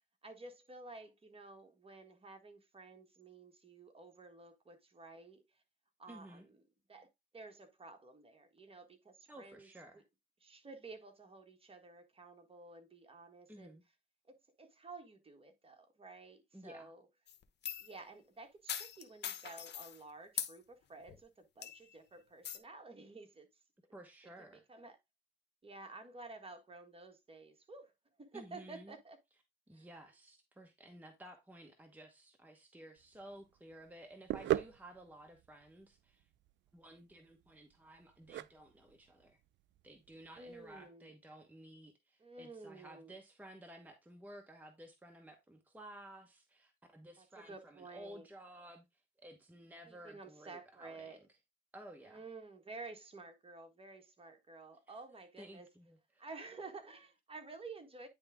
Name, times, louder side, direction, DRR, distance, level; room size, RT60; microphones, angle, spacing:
voice 1, 0.2-5.4 6.0-6.5 6.9-7.1 7.3-9.7 10.4-13.7 14.3-17.0 17.8-23.5 24.7-25.0 25.6-27.9 28.2-29.2 29.7-29.8 40.4-41.1 42.2-43.1 47.2-48.3 49.9-51.2 52.0-55.7 56.2-58.1, right 3 dB, 30° right, 1.6 m, -52 dB
voice 2, 6.1-6.5 9.3-10.0 13.5-13.8 16.5-16.9 23.9-24.6 28.3-29.0 29.7-36.3 36.7-39.4 39.8-51.2 51.7-52.2 54.9-55.0 55.4-56.2, right 1 dB, 10° right, 1.2 m, -54 dB
sound 1, 17.3-18.0 18.7-20.0 20.4-20.6 21.1-21.2 21.6-21.9 22.4-22.6, left 9 dB, 60° left, 1.0 m, -41 dB
sound 2, 33.0-40.9, right 14 dB, 65° right, 0.4 m, -41 dB
9.6 x 3.5 x 3.6 m
cardioid pair, 90°, 20 cm